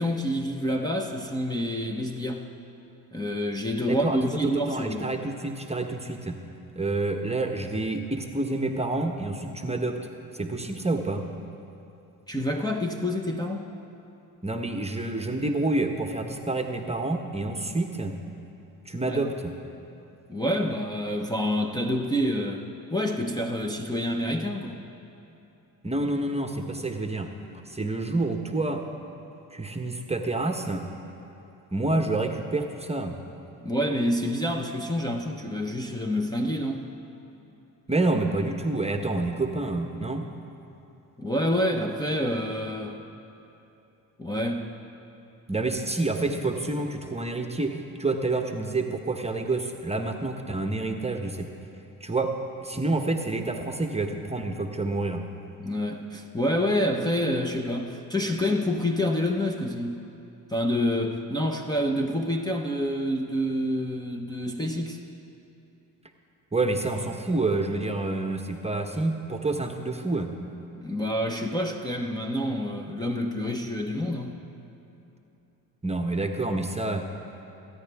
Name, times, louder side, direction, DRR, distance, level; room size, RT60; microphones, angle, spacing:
voice 1, 0.0-2.5 3.1-5.0 12.3-13.7 19.0-19.2 20.3-22.6 22.9-24.8 33.6-36.9 41.2-43.0 44.2-44.7 55.6-60.0 60.5-65.0 70.8-74.4, equal, 10° left, -1 dB, 0.9 m, -27 dB
voice 2, 3.9-6.4 6.7-10.0 10.3-11.2 14.4-18.1 18.9-19.5 25.8-27.3 27.7-28.8 29.5-30.9 31.7-33.2 37.9-40.2 45.5-51.5 52.0-52.3 52.6-55.2 66.5-70.3 75.8-77.0, right 2 dB, 15° right, 4 dB, 1.1 m, -28 dB
22.5 x 9.7 x 3.5 m, 2.9 s
supercardioid pair, 65°, 43 cm